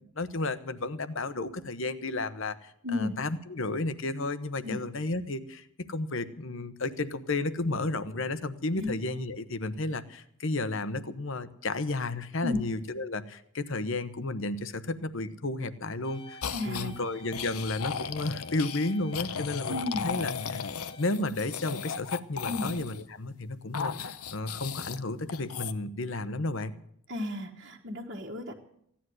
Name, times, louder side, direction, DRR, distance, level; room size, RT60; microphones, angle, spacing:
voice 1, 0.2-20.6 21.0-26.7, left 2 dB, 60° left, 13 dB, 1.0 m, -33 dB
voice 2, 2.8-3.2 4.6-4.8 8.8-8.9 12.4-12.6 16.5-17.1 19.7-20.1 22.5-22.7 27.1-28.5, left 2 dB, 50° right, -3 dB, 1.6 m, -33 dB
sound 1, 16.0-21.1, left 1 dB, 20° left, 1.4 m, -49 dB
sound 2, 16.4-16.9 17.3-23.0 23.7-25.0 25.3-25.7, left 6 dB, 80° left, 0.8 m, -36 dB
16.0 x 10.0 x 7.9 m, 0.71 s
head